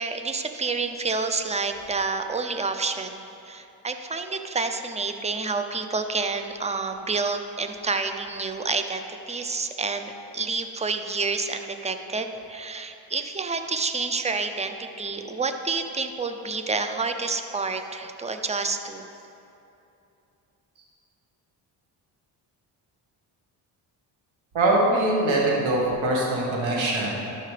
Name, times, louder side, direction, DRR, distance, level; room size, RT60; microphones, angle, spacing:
voice 1, 0.0-19.1, right 4 dB, 15° right, 7 dB, 0.6 m, -29 dB
voice 2, 24.5-27.1, right 1 dB, 70° right, -3 dB, 2.0 m, -22 dB
12.5 x 5.6 x 3.4 m, 2.8 s
supercardioid pair, 65°, 49 cm